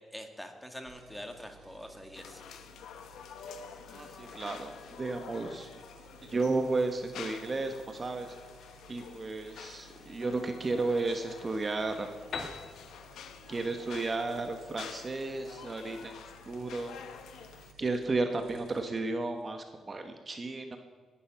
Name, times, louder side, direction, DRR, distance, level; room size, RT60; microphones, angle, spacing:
voice 1, 0.1-2.4, equal, 5° left, 5 dB, 1.9 m, -44 dB
sound 1, 0.9-20.1, right 4 dB, 80° right, 3.8 m, -58 dB
sound 2, 2.1-17.7, left 7 dB, 85° left, 1.2 m, -49 dB
voice 2, 3.9-4.7 5.0-5.7 6.2-8.4 8.9-12.1 13.5-16.9 17.8-20.8, right 3 dB, 30° right, 6 dB, 1.2 m, -33 dB
Piano, 12.3-16.0, left 4 dB, 60° left, 2.1 m, -44 dB
18.5 x 11.5 x 6.0 m, 1.5 s
cardioid pair, 125°, 0 cm